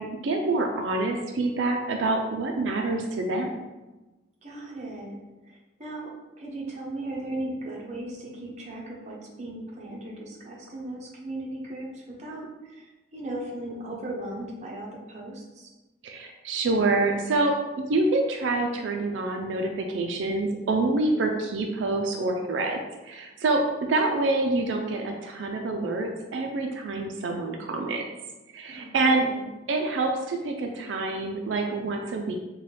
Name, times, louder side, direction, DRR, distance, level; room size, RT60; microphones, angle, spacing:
voice 1, 0.0-3.5 16.0-23.6 23.9-28.0 28.5-29.3 29.7-32.3, right 2 dB, 85° right, 2 dB, 0.4 m, -26 dB
voice 2, 4.4-5.2 5.4-6.1 6.4-15.7 28.6-29.5, right 1 dB, 40° right, -3 dB, 0.7 m, -37 dB
4.0 x 2.2 x 3.2 m, 1.1 s
head